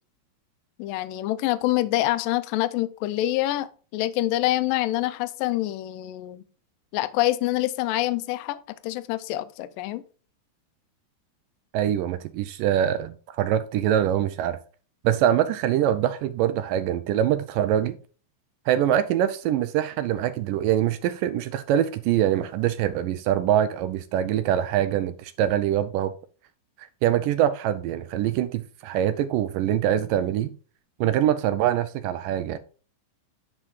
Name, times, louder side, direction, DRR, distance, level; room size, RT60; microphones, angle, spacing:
voice 1, 0.8-6.4 6.9-10.0, left 15 dB, 80° left, 2.2 m, -26 dB
voice 2, 11.7-14.6 15.0-18.0 18.7-26.1 26.8-30.5 31.0-32.6, right 11 dB, 80° right, 2.0 m, -24 dB
9.8 x 5.0 x 3.7 m
omnidirectional pair, 4.2 m